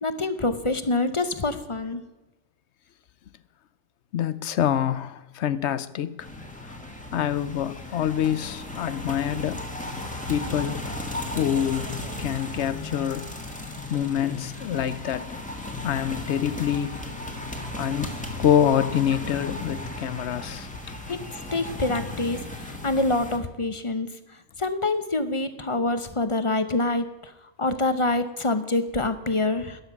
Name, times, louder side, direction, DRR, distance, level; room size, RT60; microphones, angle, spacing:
voice 1, 0.0-2.0 21.1-21.2 21.5-24.1 24.6-27.3 27.6-29.8, left 2 dB, 30° left, 0.8 m, -26 dB
voice 2, 4.1-6.3 7.1-9.6 10.3-10.8 11.3-13.3 13.9-15.3 15.8-17.0 17.8-18.1 18.4-20.7 21.1-21.2, left 10 dB, 85° left, 1.0 m, -26 dB
sound 1, 6.2-23.4, left 2 dB, 5° left, 1.7 m, -35 dB
13.0 x 10.5 x 6.0 m
omnidirectional pair, 1.1 m